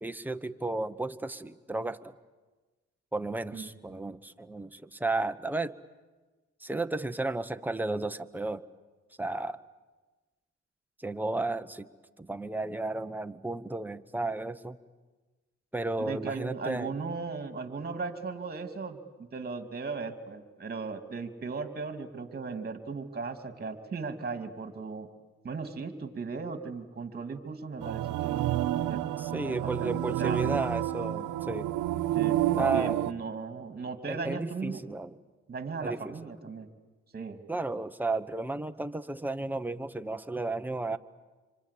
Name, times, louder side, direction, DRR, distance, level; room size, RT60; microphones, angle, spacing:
voice 1, 0.0-2.1 3.1-5.8 6.6-8.6 9.2-9.6 11.0-11.9 12.2-14.8 15.7-16.9 29.2-31.7 32.6-33.0 34.1-35.2 35.8-36.1 37.5-41.0, right 2 dB, 5° right, 8 dB, 1.0 m, -33 dB
voice 2, 16.1-25.1 25.4-28.5 28.9-29.1 29.5-30.5 32.1-34.8 35.5-36.7 37.1-37.4, right 4 dB, 30° right, 7 dB, 2.7 m, -37 dB
sound 1, 27.8-33.1, right 13 dB, 85° right, 1.0 m, -29 dB
26.5 x 26.0 x 8.5 m, 1.2 s
cardioid pair, 90°, 30 cm